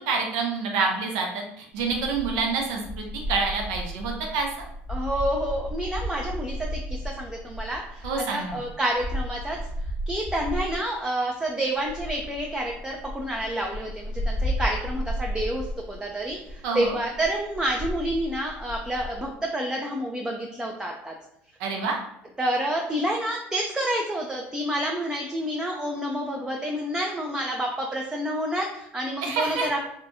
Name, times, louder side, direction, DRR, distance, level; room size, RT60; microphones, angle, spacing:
voice 1, 0.1-4.5 8.0-8.6 16.6-17.0 21.6-22.0 29.2-29.7, right 4 dB, 70° right, 1 dB, 0.6 m, -27 dB
sound 1, 1.8-10.9 11.8-19.3, equal, 30° left, 0.8 m, -33 dB
voice 2, 4.9-9.6 10.1-21.1 22.4-29.8, right 1 dB, 10° right, 0 dB, 0.4 m, -29 dB
2.7 x 2.2 x 2.7 m, 0.76 s
hypercardioid pair, 70°, 6 cm